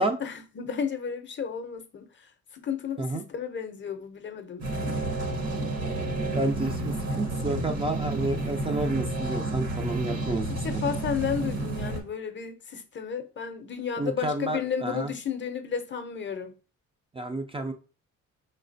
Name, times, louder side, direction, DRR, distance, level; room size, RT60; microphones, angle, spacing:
voice 1, 0.0-4.7 10.5-16.5, left 7 dB, 40° left, 0.6 m, -33 dB
sound 1, 4.6-12.0, right 2 dB, 55° right, 1.1 m, -30 dB
voice 2, 6.3-10.6 14.0-15.1 17.2-17.7, right 2 dB, 20° right, 0.4 m, -30 dB
4.7 x 3.2 x 2.6 m
cardioid pair, 90°, 30 cm